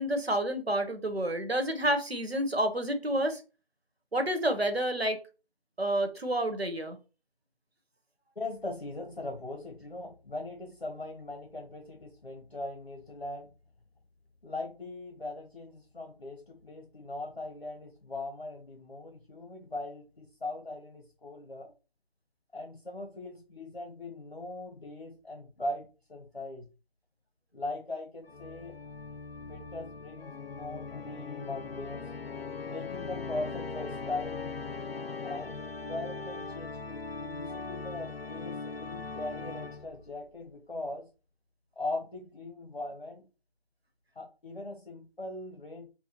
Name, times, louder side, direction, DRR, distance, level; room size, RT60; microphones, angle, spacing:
voice 1, 0.0-3.4 4.1-5.2 5.8-7.0, right 1 dB, 80° right, 1.2 m, -29 dB
voice 2, 8.3-13.5 14.4-21.7 22.5-26.7 27.5-28.8 29.4-32.1 32.6-34.5 35.2-41.1 41.8-43.2 44.1-45.9, left 2 dB, 55° left, 1.0 m, -40 dB
Organ, 28.3-40.1, left 4 dB, 75° left, 0.6 m, -40 dB
5.8 x 2.3 x 2.9 m
figure-of-eight pair, 165°, 30 cm